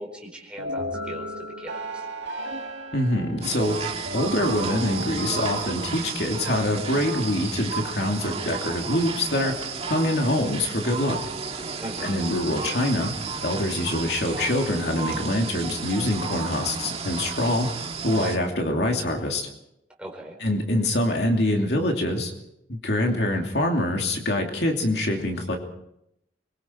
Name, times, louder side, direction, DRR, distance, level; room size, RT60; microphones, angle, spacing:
voice 1, 0.0-2.0 11.8-12.2 20.0-20.4, right 1 dB, 5° right, 0 dB, 4.5 m, -39 dB
sound 1, 0.6-6.3, right 1 dB, 90° right, 1.9 m, -34 dB
voice 2, 2.9-3.8 4.1-9.6 9.9-11.2 12.0-13.1 13.4-17.7 18.0-19.5 20.4-22.3 22.7-25.6, left 1 dB, 65° left, 2 dB, 2.8 m, -25 dB
sound 2, 3.4-18.4, right 5 dB, 35° right, 1.8 m, -33 dB
24.5 x 23.0 x 4.6 m, 0.81 s
head